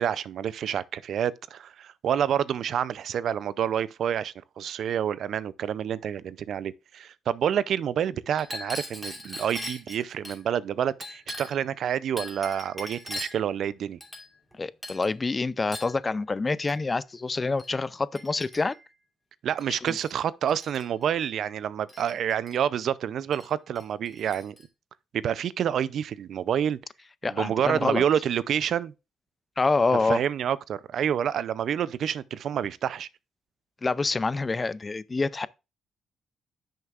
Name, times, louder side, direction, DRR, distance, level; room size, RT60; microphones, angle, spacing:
voice 1, 0.0-14.0 19.4-24.6 25.1-26.8 27.2-28.9 30.0-33.1, right 9 dB, 65° right, 0.5 m, -28 dB
Chink clink, 8.3-10.4 11.0-11.7 12.2-13.5 14.0-14.5 14.8-15.1 15.7-16.0 16.7-16.8 17.6-17.7 18.1-18.9 19.6-20.2 20.5-20.9 21.9-22.6 23.3-23.5 23.8-24.6, left 1 dB, ahead, 2.8 m, -40 dB
voice 2, 14.6-18.7 19.7-20.0 27.2-28.0 29.6-30.2 33.8-35.5, left 3 dB, 25° left, 0.4 m, -27 dB
10.0 x 6.5 x 2.4 m
cardioid pair, 90°, 0 cm